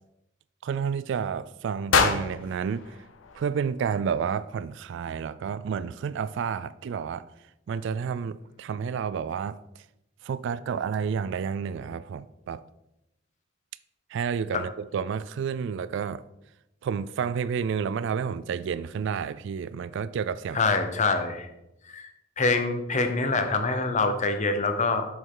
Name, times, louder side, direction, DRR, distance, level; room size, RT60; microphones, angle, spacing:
voice 1, 0.6-3.0 3.3-7.3 7.7-9.6 10.2-12.6 14.1-16.2 16.8-20.6, right 6 dB, 65° right, 0.3 m, -30 dB
sound 1, 1.9-4.1, left 5 dB, 85° left, 0.8 m, -27 dB
voice 2, 20.5-21.5 21.9-22.1 22.4-25.1, left 3 dB, 40° left, 0.8 m, -25 dB
7.5 x 5.3 x 3.8 m
head